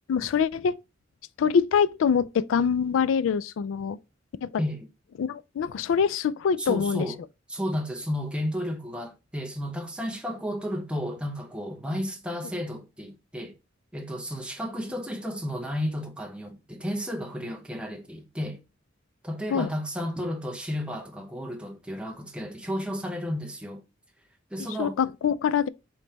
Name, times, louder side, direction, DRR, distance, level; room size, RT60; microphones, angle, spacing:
voice 1, 0.1-0.8 1.4-4.0 4.4-4.5 5.2-7.1 19.5-19.7 24.8-25.7, left 6 dB, 75° left, 0.3 m, -24 dB
voice 2, 6.6-7.2 7.5-13.6 13.9-18.6 19.2-23.8 24.5-25.0, equal, 5° right, 0.7 m, -32 dB
5.1 x 3.2 x 2.8 m
head